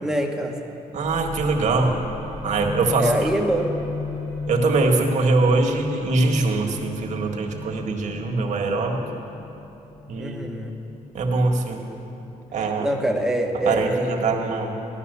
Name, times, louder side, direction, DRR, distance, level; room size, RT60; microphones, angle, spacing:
voice 1, 0.0-0.6 3.0-3.7 10.2-10.8 12.6-14.2, right 1 dB, 5° right, 1 dB, 1.1 m, -25 dB
voice 2, 0.9-1.9 2.4-3.1 4.5-9.0 10.1-10.5 11.1-11.8 12.5-12.9 13.7-14.8, right 3 dB, 60° right, 2 dB, 1.7 m, -22 dB
sound 1, 1.0-12.4, left 4 dB, 75° left, 4.1 m, -36 dB
16.0 x 11.5 x 6.8 m, 3.0 s
cardioid pair, 170°, 14 cm